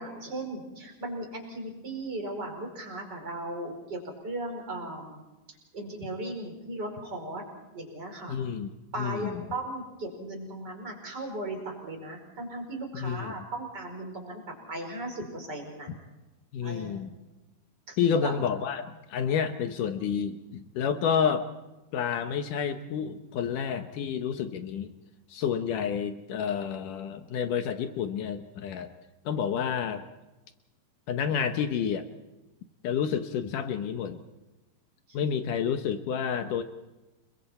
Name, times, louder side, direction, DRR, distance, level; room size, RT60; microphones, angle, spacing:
voice 1, 0.0-5.2 5.7-7.4 7.7-8.4 8.9-14.4 14.7-15.9 16.6-17.0 17.9-18.4 35.1-35.2, right 2 dB, 25° right, 1 dB, 5.3 m, -37 dB
voice 2, 8.3-8.7 9.0-9.4 13.0-13.3 16.5-17.1 18.0-21.5 21.9-24.9 25.3-28.9 29.3-30.1 31.1-32.0 32.8-34.2 35.1-36.6, left 7 dB, 70° left, 8 dB, 2.1 m, -29 dB
30.0 x 22.5 x 4.3 m, 1.1 s
omnidirectional pair, 4.9 m